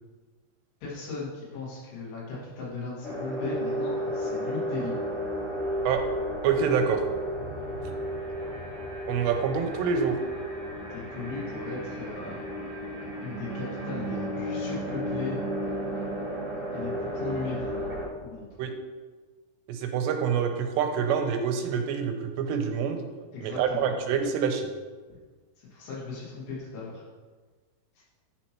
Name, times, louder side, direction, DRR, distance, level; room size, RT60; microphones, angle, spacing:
voice 1, 0.8-4.9 10.9-12.4 13.2-15.4 16.7-17.7 18.2-18.5 23.3-23.9 25.6-27.0 28.0-28.1, left 4 dB, 80° left, -6 dB, 4.0 m, -37 dB
sound 1, 3.0-18.1, equal, 35° right, 1.4 m, -33 dB
voice 2, 6.4-7.0 9.1-10.2 18.6-18.7 19.7-23.1 23.4-24.7, right 7 dB, 90° right, 5 dB, 2.8 m, -26 dB
10.5 x 4.2 x 2.9 m, 1.4 s
omnidirectional pair, 4.8 m